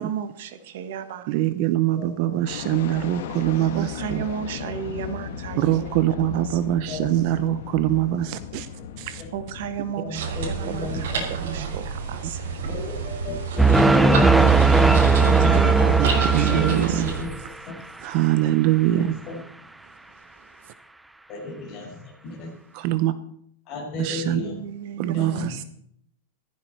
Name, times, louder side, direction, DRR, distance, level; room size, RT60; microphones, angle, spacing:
voice 1, 0.0-1.3 3.7-5.8 6.3-6.6 9.1-12.4 15.2-17.0 24.4-25.6, right 8 dB, 55° right, 1.3 m, -34 dB
voice 2, 1.3-4.2 5.6-8.7 9.0-9.1 11.4-11.9 16.0-16.1 16.3-17.1 18.0-19.1 22.7-23.1 24.0-24.4 25.0-25.6, right 13 dB, 40° right, 0.7 m, -23 dB
voice 3, 1.9-2.3 6.8-7.1 9.2-9.3 10.0-11.2 12.6-16.2 16.5-17.3 18.9-19.4 21.3-22.5 23.7-24.5 25.1-25.5, left 3 dB, 30° left, 6.0 m, -34 dB
sound 1, 2.4-19.2, left 8 dB, 60° left, 1.6 m, -39 dB
sound 2, 10.1-17.2, right 4 dB, 85° right, 5.8 m, -30 dB
sound 3, 13.6-17.4, right 4 dB, 5° right, 0.4 m, -17 dB
15.5 x 15.0 x 4.5 m
supercardioid pair, 170°, 0 cm